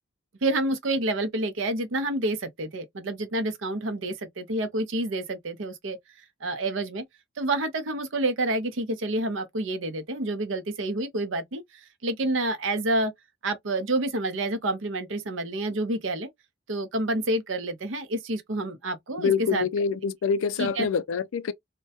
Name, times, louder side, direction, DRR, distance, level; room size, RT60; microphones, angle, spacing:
voice 1, 0.4-7.1 7.4-13.1 13.4-16.3 16.7-19.7 20.6-20.9, right 2 dB, 75° right, 0.6 m, -28 dB
voice 2, 19.2-21.5, left 6 dB, 85° left, 0.4 m, -26 dB
2.2 x 2.1 x 2.7 m
head